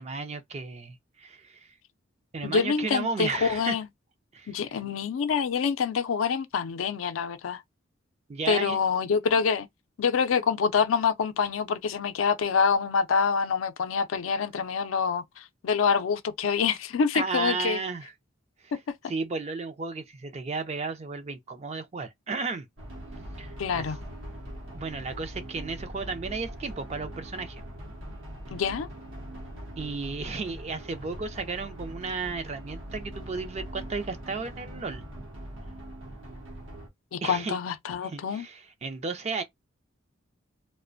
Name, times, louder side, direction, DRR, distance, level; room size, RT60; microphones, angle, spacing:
voice 1, 0.0-1.7 2.3-3.7 4.3-4.5 8.3-8.8 17.1-18.1 18.6-18.7 19.1-22.7 23.4-23.8 24.7-27.6 29.8-35.0 37.2-37.6 38.0-39.4, right 4 dB, 35° right, 0.4 m, -34 dB
voice 2, 2.4-3.9 4.5-7.6 8.5-9.7 10.0-17.8 23.6-24.0 28.5-28.9 37.1-38.5, left 6 dB, 85° left, 0.4 m, -26 dB
sound 1, 22.8-36.9, right 1 dB, 75° right, 0.8 m, -41 dB
2.4 x 2.1 x 2.5 m
head